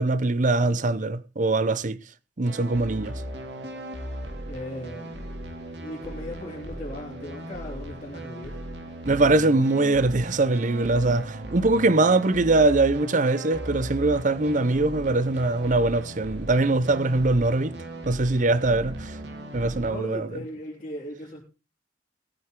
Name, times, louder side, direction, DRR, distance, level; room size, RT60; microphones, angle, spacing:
voice 1, 0.0-2.0 2.4-3.1 9.1-17.7 18.1-19.2 19.5-20.3, right 2 dB, 45° right, 0.7 m, -22 dB
sound 1, 2.4-19.9, right 1 dB, 70° right, 2.7 m, -37 dB
voice 2, 4.5-5.2 5.8-8.6 19.8-21.4, left 1 dB, 35° left, 3.5 m, -37 dB
18.5 x 9.1 x 3.7 m
head